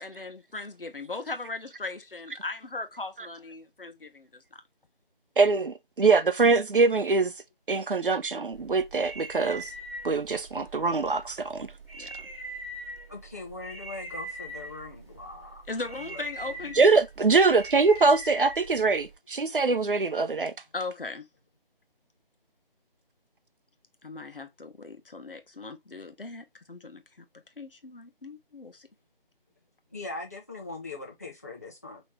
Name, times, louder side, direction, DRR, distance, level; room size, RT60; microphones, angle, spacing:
voice 1, 0.0-4.4 9.4-9.6 12.0-12.1 15.7-17.0 20.7-21.2 24.0-27.2 27.6-28.9, left 3 dB, 65° left, 1.1 m, -38 dB
voice 2, 5.4-7.3 7.7-9.7 10.0-11.7 12.0-12.1 16.7-20.5, right 4 dB, 65° right, 0.7 m, -23 dB
sound 1, 8.5-19.1, right 1 dB, 15° right, 3.5 m, -42 dB
voice 3, 13.1-16.7 29.9-32.0, left 3 dB, 15° left, 0.8 m, -41 dB
4.9 x 3.1 x 3.2 m
figure-of-eight pair, 160°, 29 cm